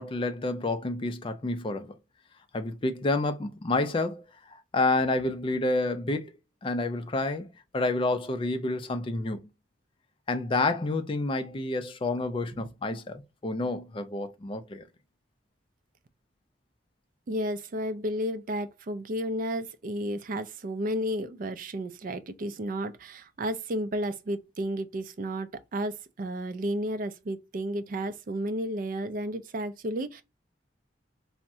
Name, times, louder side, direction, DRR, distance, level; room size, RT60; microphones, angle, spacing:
voice 1, 0.0-2.0 2.5-4.2 4.7-6.3 6.6-7.5 7.7-9.5 10.3-14.8, left 2 dB, 30° left, 0.4 m, -29 dB
voice 2, 17.3-30.2, equal, 50° right, 0.4 m, -32 dB
3.4 x 2.1 x 2.6 m
head